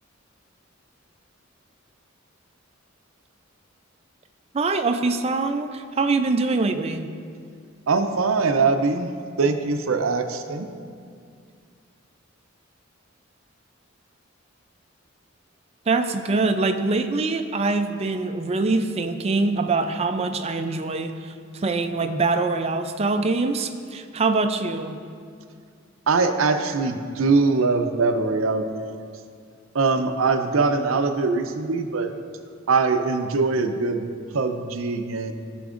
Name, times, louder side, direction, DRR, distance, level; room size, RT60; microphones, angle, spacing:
voice 1, 4.5-7.1 15.9-25.0, right 3 dB, 30° right, 8 dB, 0.4 m, -24 dB
voice 2, 7.9-9.1 9.4-10.7 26.1-28.9 29.7-32.1 32.7-35.3, right 4 dB, 85° right, 7 dB, 0.6 m, -22 dB
15.0 x 5.9 x 2.5 m, 2.2 s
head